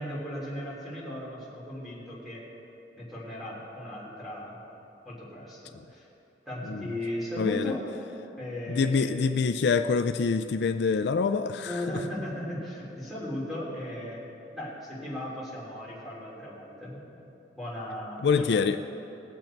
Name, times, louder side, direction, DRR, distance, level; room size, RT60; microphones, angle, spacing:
voice 1, 0.0-2.4 3.0-4.6 5.0-6.0 6.4-7.8 8.4-9.2 11.6-14.2 14.5-17.0 17.5-18.6, left 1 dB, ahead, -7 dB, 3.2 m, -36 dB
voice 2, 7.4-7.7 8.7-11.7 18.2-18.8, left 5 dB, 65° left, 8 dB, 0.4 m, -25 dB
19.5 x 7.9 x 4.5 m, 2.9 s
head